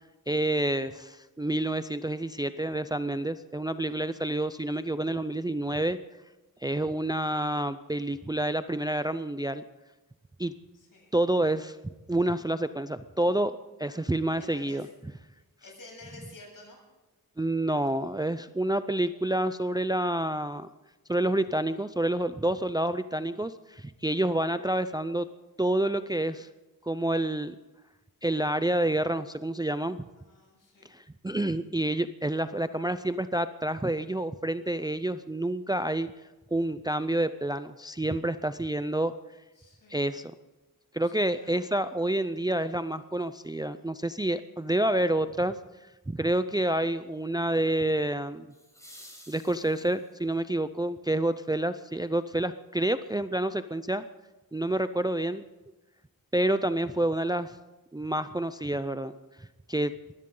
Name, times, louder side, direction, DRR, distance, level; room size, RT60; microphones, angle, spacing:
voice 1, 0.3-6.0 6.6-9.6 10.4-10.5 11.1-14.9 17.4-20.7 21.1-25.3 25.6-26.5 26.8-27.6 28.2-30.0 30.9-36.1 36.5-39.1 39.9-40.3 40.9-45.6 46.1-48.5 49.3-54.0 54.5-55.4 56.3-57.6 57.9-59.1 59.4-59.9, right 1 dB, 10° right, 12 dB, 0.5 m, -28 dB
voice 2, 10.7-11.1 13.8-14.1 14.4-14.8 15.6-16.8 30.2-30.9 39.6-40.0 41.0-41.6, left 2 dB, 65° left, -1 dB, 7.8 m, -51 dB
sound 1, 42.9-43.0 48.5-50.3 52.5-52.6, equal, 10° left, 4.9 m, -52 dB
22.0 x 16.0 x 3.8 m, 1.1 s
wide cardioid pair, 105°, 36 cm